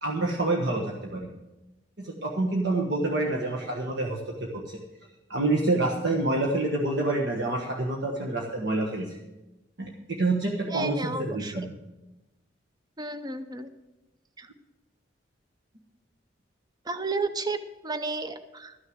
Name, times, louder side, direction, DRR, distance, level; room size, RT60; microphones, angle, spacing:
voice 1, 0.0-1.3 2.0-4.8 5.3-9.2 9.8-11.7, right 2 dB, 60° right, -1 dB, 1.3 m, -27 dB
voice 2, 10.7-11.5 13.0-13.7 14.4-14.5 16.9-18.8, right 3 dB, 20° right, 10 dB, 0.6 m, -32 dB
13.0 x 6.4 x 7.9 m, 1.0 s
head